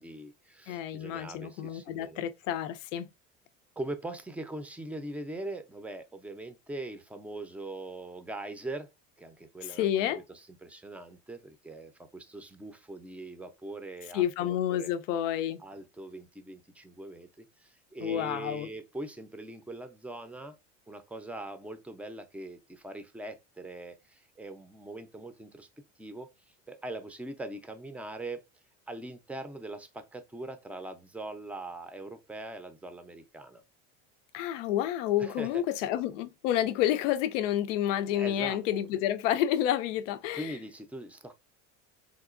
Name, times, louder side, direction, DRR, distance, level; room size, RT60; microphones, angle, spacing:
voice 1, 0.0-2.2 3.8-8.9 9.2-14.9 15.6-20.6 20.9-25.7 26.0-28.4 28.9-33.6 35.2-35.6 38.1-38.9 40.3-41.3, right 2 dB, 5° right, 0.4 m, -42 dB
voice 2, 0.7-3.0 9.6-10.2 14.1-15.6 18.0-18.7 34.3-40.5, left 11 dB, 85° left, 0.5 m, -29 dB
3.7 x 2.9 x 2.4 m
supercardioid pair, 95°, 36 cm